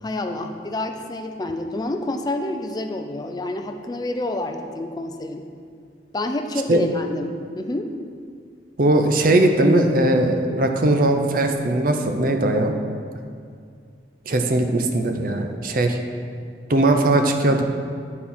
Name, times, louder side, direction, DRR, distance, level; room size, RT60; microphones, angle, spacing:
voice 1, 0.0-5.4 6.1-7.9, left 2 dB, 25° left, 5 dB, 0.4 m, -28 dB
voice 2, 8.8-12.7 14.3-16.0 16.7-17.6, right 1 dB, 50° right, 5 dB, 0.6 m, -19 dB
8.5 x 4.4 x 5.4 m, 2.2 s
head